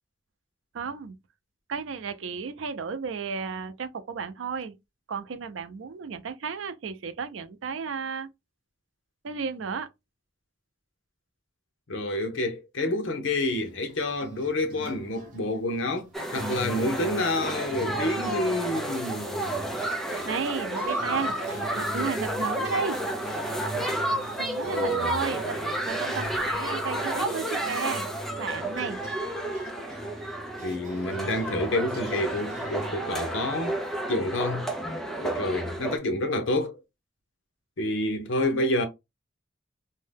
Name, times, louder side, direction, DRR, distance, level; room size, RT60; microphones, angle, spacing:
voice 1, 0.7-1.2 1.7-4.7 5.1-8.3 9.2-9.9 20.3-23.0 24.4-28.1 28.4-29.0, right 5 dB, 85° right, 0.5 m, -33 dB
voice 2, 11.9-16.1 16.3-19.7 23.7-23.9 24.6-25.1 30.6-33.8 34.1-34.7 35.2-36.8 37.8-38.9, left 1 dB, 85° left, 0.8 m, -28 dB
sound 1, 13.5-33.0, right 1 dB, 45° right, 0.9 m, -42 dB
sound 2, 16.1-36.0, right 1 dB, ahead, 0.4 m, -31 dB
2.7 x 2.1 x 3.3 m
head